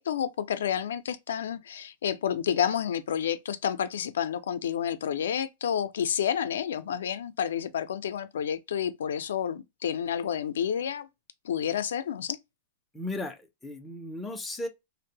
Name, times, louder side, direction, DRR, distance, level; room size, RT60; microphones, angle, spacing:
voice 1, 0.0-11.1 11.4-12.4, left 9 dB, 85° left, 0.3 m, -30 dB
voice 2, 12.9-14.7, left 2 dB, 5° left, 0.3 m, -36 dB
2.6 x 2.0 x 2.7 m
supercardioid pair, 170°, 0 cm